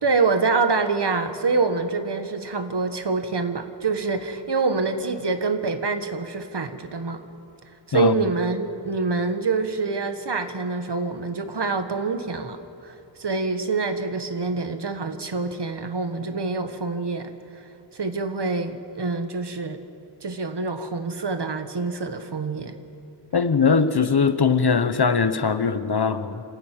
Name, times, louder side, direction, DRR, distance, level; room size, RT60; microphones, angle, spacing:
voice 1, 0.0-7.2 7.9-12.6 12.8-17.6 17.9-19.8 20.2-22.8, right 4 dB, 60° right, 8 dB, 1.6 m, -26 dB
voice 2, 23.3-26.4, left 5 dB, 55° left, 11 dB, 1.1 m, -20 dB
26.5 x 12.5 x 9.2 m, 2.7 s
cardioid pair, 40°, 45 cm